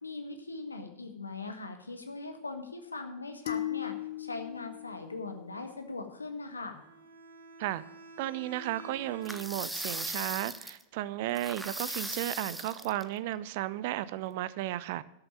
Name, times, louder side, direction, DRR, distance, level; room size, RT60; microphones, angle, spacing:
voice 1, 0.0-6.8, left 3 dB, 80° left, 6 dB, 1.6 m, -40 dB
sound 1, 3.5-5.9, left 13 dB, 50° left, 1.1 m, -38 dB
Bowed string instrument, 6.7-9.7, right 2 dB, 80° right, 2.4 m, -50 dB
voice 2, 8.2-15.0, right 14 dB, 50° right, 18 dB, 0.5 m, -34 dB
sound 2, 9.2-10.8 11.3-13.0, right 1 dB, 5° right, 0.7 m, -38 dB
12.0 x 6.8 x 7.3 m, 0.84 s
figure-of-eight pair, 90°, 0 cm